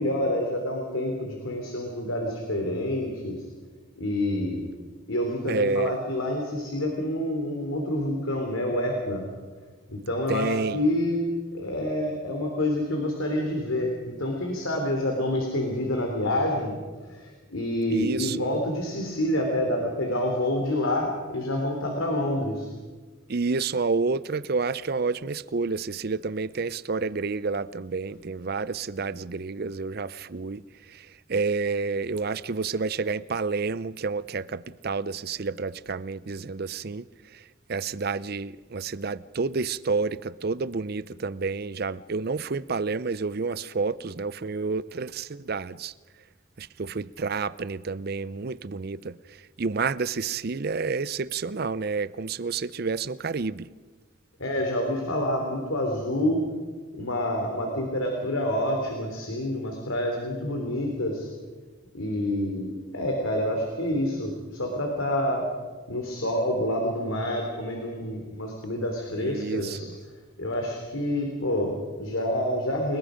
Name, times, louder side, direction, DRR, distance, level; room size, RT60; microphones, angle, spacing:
voice 1, 0.0-3.4 4.0-4.7 5.1-9.2 9.9-11.2 11.5-16.7 17.1-22.7 54.4-56.4 57.0-61.3 61.9-65.4 65.9-69.9 70.4-73.0, left 1 dB, 80° left, 3.4 m, -28 dB
voice 2, 5.5-5.9 10.3-10.8 17.9-18.5 23.3-37.1 37.3-37.4 37.7-45.9 46.6-53.7 69.2-69.9, right 4 dB, 50° right, 0.5 m, -29 dB
30.0 x 19.5 x 5.2 m
head